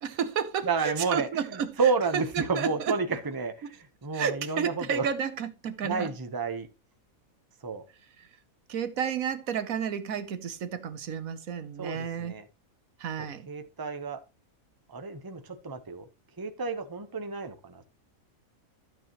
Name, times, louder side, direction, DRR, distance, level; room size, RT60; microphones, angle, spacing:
voice 1, 0.0-3.0 4.1-6.1 8.2-8.3 8.7-12.3 13.0-13.5, right 7 dB, 75° right, 1.4 m, -32 dB
voice 2, 0.6-5.1 5.8-6.7 7.6-7.8 11.8-12.4 13.2-14.2 14.9-16.1 16.4-17.8, right 4 dB, 20° right, 0.9 m, -31 dB
12.5 x 7.2 x 3.0 m
omnidirectional pair, 1.5 m